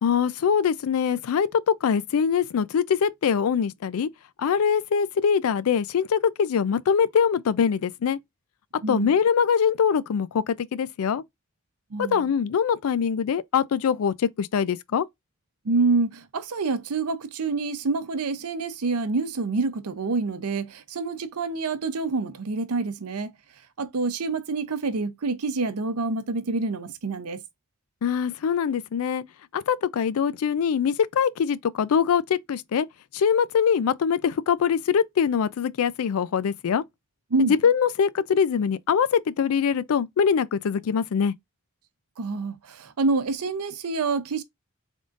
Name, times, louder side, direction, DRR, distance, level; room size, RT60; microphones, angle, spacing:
voice 1, 0.0-4.1 4.4-8.2 8.9-11.2 12.0-15.1 28.0-29.2 29.5-32.9 33.1-36.8 37.4-41.3, left 7 dB, 80° left, 0.4 m, -23 dB
voice 2, 8.8-9.2 11.9-12.3 15.6-23.3 23.8-27.4 37.3-37.5 42.2-44.4, right 3 dB, 90° right, 0.6 m, -27 dB
3.6 x 2.5 x 3.7 m
head